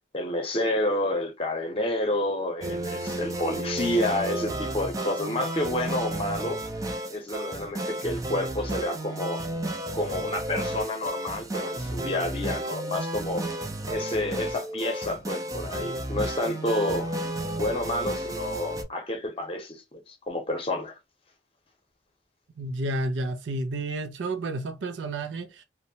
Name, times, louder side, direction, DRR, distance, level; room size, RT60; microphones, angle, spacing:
voice 1, 0.1-6.6 7.1-9.5 9.9-13.4 13.9-20.9, left 1 dB, 30° left, 0.8 m, -29 dB
sound 1, 2.6-18.8, right 1 dB, 20° right, 0.4 m, -32 dB
voice 2, 22.6-25.6, right 2 dB, 80° right, 0.4 m, -31 dB
2.7 x 2.1 x 2.7 m
head